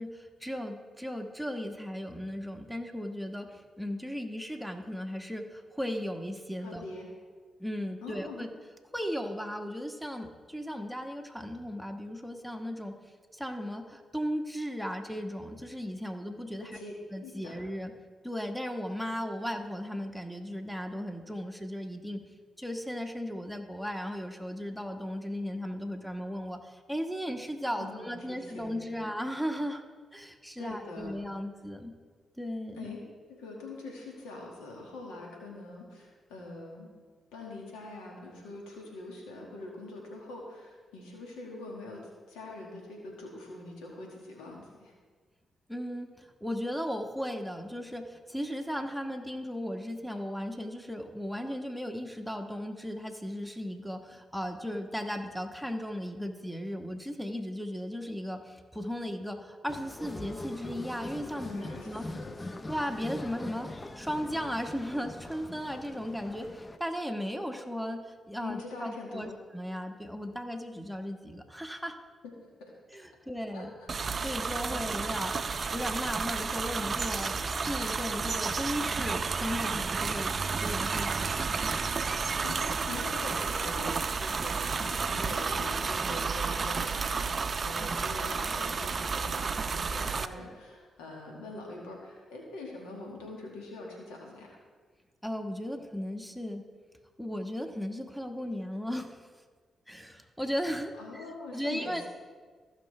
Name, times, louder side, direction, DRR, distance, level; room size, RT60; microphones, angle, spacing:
voice 1, 0.0-6.8 7.6-8.5 8.9-12.9 13.3-16.8 17.1-17.9 18.2-22.2 22.6-29.8 30.1-31.9 32.4-32.9 45.7-62.0 62.7-63.7 63.9-72.0 72.9-73.7 74.1-75.3 75.7-81.9 95.2-96.6 97.2-99.2 99.9-101.3 101.5-102.0, equal, ahead, 4 dB, 1.4 m, -36 dB
voice 2, 6.6-7.1 8.0-8.5 16.7-16.9 17.2-17.6 27.8-29.1 30.6-31.2 32.7-33.0 33.3-36.9 37.3-44.9 61.4-62.3 68.4-69.4 72.4-72.5 73.5-73.9 74.3-74.4 74.7-74.8 82.4-94.6 101.0-102.1, left 2 dB, 90° left, -1 dB, 1.8 m, -44 dB
sound 1, 59.7-66.8, left 2 dB, 30° left, 0.6 m, -42 dB
sound 2, 73.9-90.3, right 5 dB, 50° right, 0.5 m, -31 dB
16.0 x 5.9 x 3.3 m, 1.5 s
hypercardioid pair, 45°, 0 cm